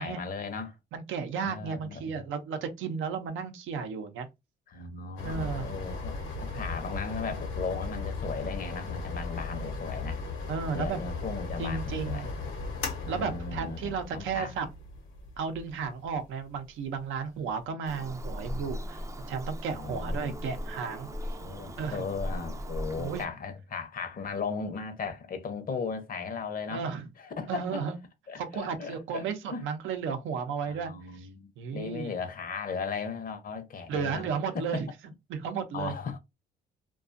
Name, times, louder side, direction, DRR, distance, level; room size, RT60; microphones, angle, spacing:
voice 1, 0.0-0.8 1.4-2.2 4.7-6.1 6.4-10.2 10.7-12.3 13.1-14.5 19.7-20.4 21.4-26.8 27.2-27.8 28.3-29.2 29.5-29.6 30.6-34.3 34.5-34.8 35.7-36.2, left 5 dB, 45° left, 0.6 m, -36 dB
voice 2, 0.9-4.3 5.2-5.6 10.5-11.0 11.6-12.3 13.1-14.7 15.4-21.1 21.8-22.0 23.0-23.3 26.7-27.0 27.5-28.0 28.4-31.3 31.6-32.1 33.9-34.9 35.3-35.9, right 6 dB, 85° right, 0.6 m, -33 dB
sound 1, 5.2-17.6, left 3 dB, 90° left, 0.9 m, -37 dB
Bird vocalization bird call bird song, 17.8-23.3, equal, 15° right, 0.4 m, -37 dB
2.4 x 2.3 x 2.5 m
cardioid pair, 90°, 20 cm